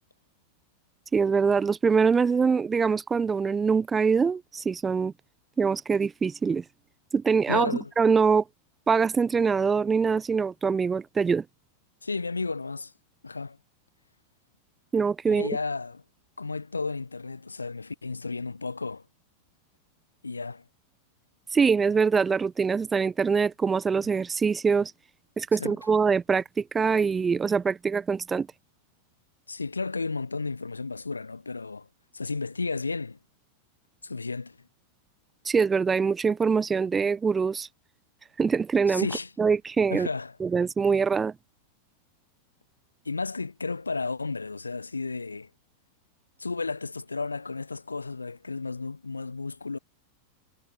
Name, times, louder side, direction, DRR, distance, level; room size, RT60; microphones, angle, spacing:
voice 1, 1.1-5.1 5.6-6.6 7.1-8.4 8.9-11.4 14.9-15.6 21.5-24.9 25.4-28.5 35.5-37.7 38.4-39.1 39.4-40.1 40.4-41.3, right 5 dB, 15° right, 1.8 m, -24 dB
voice 2, 7.5-7.9 12.0-12.9 13.2-13.6 15.3-16.0 16.4-19.0 20.2-20.6 25.6-25.8 29.5-31.9 32.1-33.2 34.0-34.6 38.9-39.3 39.9-40.3 43.0-45.5 46.4-49.8, left 4 dB, 80° left, 4.8 m, -33 dB
figure-of-eight pair, 90°, 0 cm